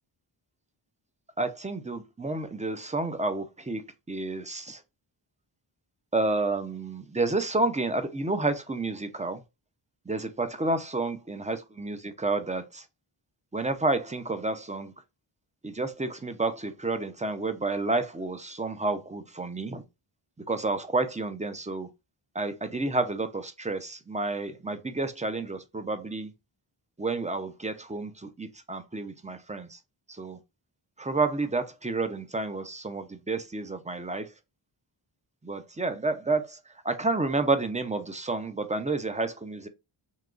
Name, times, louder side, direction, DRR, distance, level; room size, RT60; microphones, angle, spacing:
voice 1, 1.4-4.8 6.1-9.4 10.1-12.9 13.5-14.9 15.6-19.8 20.5-21.9 22.3-26.3 27.0-29.8 30.1-30.4 31.0-34.3 35.4-36.6 36.8-39.7, right 3 dB, 15° right, 0.4 m, -30 dB
2.9 x 2.3 x 3.7 m
wide cardioid pair, 75°, 49 cm